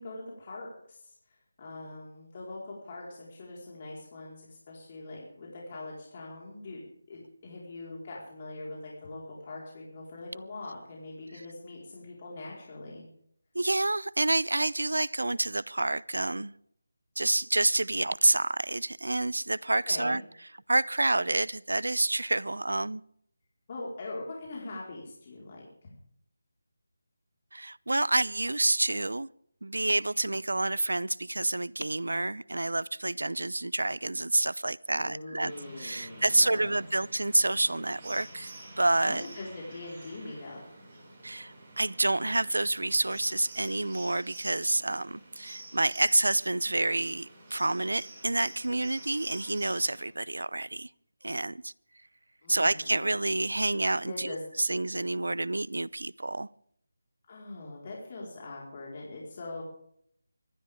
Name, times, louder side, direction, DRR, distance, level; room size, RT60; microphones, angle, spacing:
voice 1, 0.0-6.8 7.1-13.0 19.9-20.2 23.7-25.6 34.9-36.8 39.0-40.8 52.4-52.9 54.0-54.4 57.3-59.6, left 2 dB, 35° left, 4.6 m, -42 dB
voice 2, 13.5-16.5 17.2-20.2 20.7-23.0 27.5-29.3 29.6-35.5 35.8-39.2 41.2-50.9 51.2-51.7 52.5-56.5, right 2 dB, 85° right, 0.6 m, -28 dB
sound 1, 35.4-50.0, right 2 dB, 25° right, 6.0 m, -49 dB
25.5 x 12.5 x 3.7 m
figure-of-eight pair, 165°, 0 cm